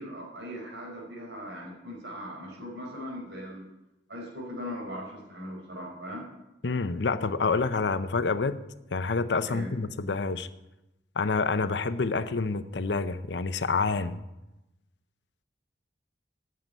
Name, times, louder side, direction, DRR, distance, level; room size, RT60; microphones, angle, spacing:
voice 1, 0.0-3.7 4.1-6.3 9.4-9.7, equal, 80° right, -1 dB, 4.6 m, -39 dB
voice 2, 6.6-8.6 8.9-10.5 11.2-14.2, left 4 dB, 75° left, 12 dB, 0.7 m, -28 dB
9.4 x 7.8 x 9.1 m, 0.95 s
head